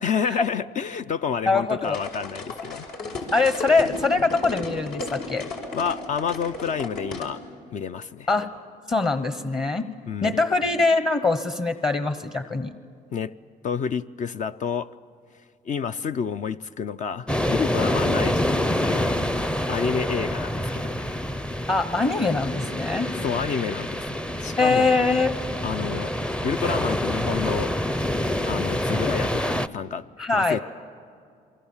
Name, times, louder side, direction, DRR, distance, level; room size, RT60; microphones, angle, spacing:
voice 1, 0.0-2.9 5.7-7.4 7.7-8.3 10.1-10.4 13.1-13.3 13.6-14.9 15.6-19.3 19.6-21.0 23.1-25.0 25.6-26.1 26.4-27.7 28.4-30.1 30.3-30.6, left 6 dB, 45° left, 11 dB, 0.6 m, -29 dB
voice 2, 1.5-2.0 3.3-5.5 8.3-8.5 8.9-9.9 10.2-12.7 21.7-23.1 24.6-25.3 30.2-30.6, left 3 dB, 25° left, 9 dB, 1.1 m, -23 dB
sound 1, 1.8-7.3, left 2 dB, 75° left, 5.3 m, -34 dB
sound 2, 17.3-29.7, left 1 dB, 5° left, 0.6 m, -27 dB
28.0 x 24.0 x 7.3 m, 2.2 s
cardioid pair, 110°, 17 cm